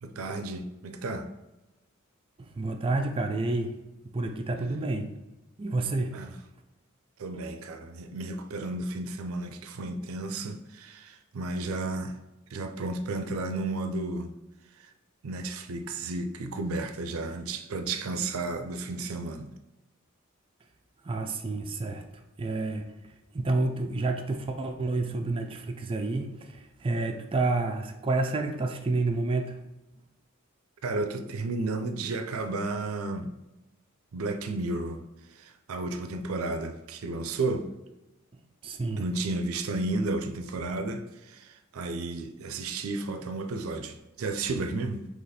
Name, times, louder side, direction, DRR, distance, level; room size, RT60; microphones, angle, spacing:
voice 1, 0.0-1.3 6.1-6.4 7.2-12.2 12.5-14.3 14.7-14.9 15.2-19.5 30.8-33.3 34.1-35.0 35.3-37.7 39.0-45.1, right 2 dB, 80° right, 0.5 m, -33 dB
voice 2, 2.4-3.7 4.1-5.1 5.6-6.2 21.0-22.0 22.4-22.9 23.3-29.6 38.6-39.1, right 2 dB, 25° right, 0.4 m, -29 dB
4.0 x 3.0 x 4.1 m
head